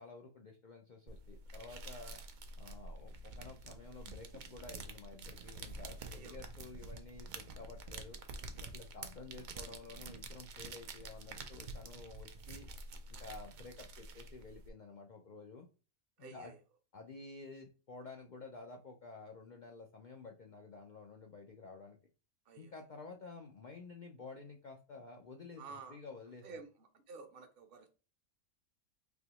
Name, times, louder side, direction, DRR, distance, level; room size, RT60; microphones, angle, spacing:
voice 1, 0.0-2.2 2.6-8.2 8.5-12.7 13.1-15.7 16.2-16.5 16.9-22.0 22.6-26.6, left 4 dB, 70° left, 2 dB, 0.4 m, -51 dB
sound 1, 1.1-14.7, right 3 dB, 75° right, 0.4 m, -48 dB
voice 2, 16.2-16.6 22.5-22.7 25.6-26.0 26.4-27.9, right 4 dB, 50° right, 6 dB, 0.8 m, -51 dB
4.0 x 2.9 x 2.9 m, 0.36 s
omnidirectional pair, 1.4 m